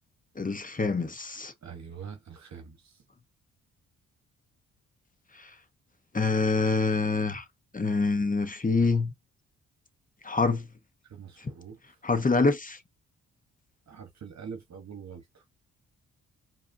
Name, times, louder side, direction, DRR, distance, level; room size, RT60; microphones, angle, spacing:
voice 1, 0.4-1.5 5.3-5.5 6.1-7.4 7.7-9.1 10.2-10.7 11.4-11.5 12.0-12.8, left 3 dB, 25° left, 1.0 m, -26 dB
voice 2, 1.6-3.0 11.0-11.8 13.9-15.4, right 6 dB, 50° right, 1.2 m, -44 dB
4.8 x 2.8 x 2.7 m
supercardioid pair, 50°, 36 cm